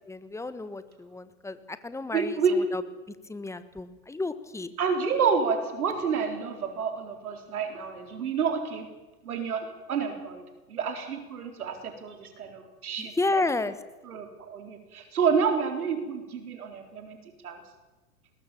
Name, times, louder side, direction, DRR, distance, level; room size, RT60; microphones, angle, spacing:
voice 1, 0.1-2.8 3.3-4.7 13.2-13.7, left 2 dB, 5° left, 13 dB, 1.2 m, -31 dB
voice 2, 2.1-2.6 4.8-8.9 9.2-10.4 10.7-13.4 14.0-17.2 17.4-17.6, right 6 dB, 75° right, 6 dB, 4.2 m, -29 dB
21.5 x 20.0 x 7.3 m, 1.2 s
hypercardioid pair, 110°, 45 cm